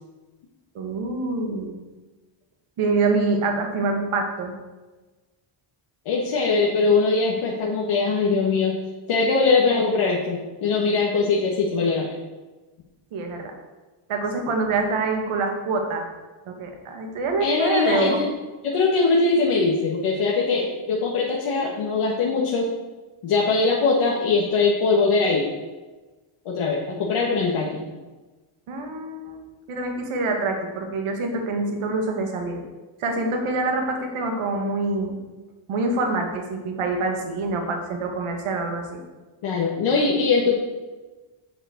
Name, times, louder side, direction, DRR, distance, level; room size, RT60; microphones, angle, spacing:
voice 1, 0.7-1.7 2.8-4.5 13.1-13.5 14.1-16.1 16.5-18.2 27.2-27.3 28.7-32.6 33.0-35.2 35.7-39.0, right 3 dB, 85° right, 3 dB, 2.0 m, -26 dB
voice 2, 6.0-8.8 9.1-12.1 17.4-18.3 18.6-22.7 23.2-25.5 26.4-27.8 39.4-40.5, left 4 dB, 80° left, -4 dB, 1.8 m, -21 dB
7.6 x 7.1 x 6.5 m, 1.2 s
cardioid pair, 110°, 50 cm